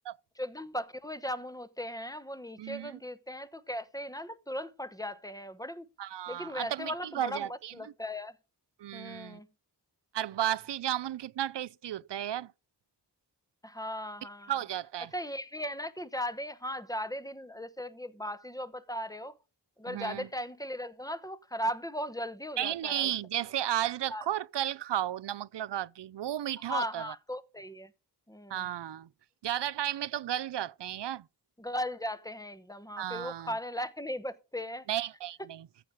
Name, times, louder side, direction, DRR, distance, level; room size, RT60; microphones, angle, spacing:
voice 1, 0.4-5.9 6.3-8.3 8.9-9.5 13.6-14.6 15.1-19.4 19.8-23.1 24.1-24.3 26.7-27.9 28.3-28.7 31.6-34.9, equal, 10° left, 1.0 m, -37 dB
voice 2, 2.6-3.0 6.0-7.7 8.8-9.4 10.1-12.5 14.5-15.1 19.9-20.3 22.6-27.0 28.5-29.1 29.4-31.2 33.0-33.5 34.9-35.7, right 11 dB, 80° right, 0.5 m, -33 dB
14.5 x 6.9 x 4.8 m
wide cardioid pair, 95°, 41 cm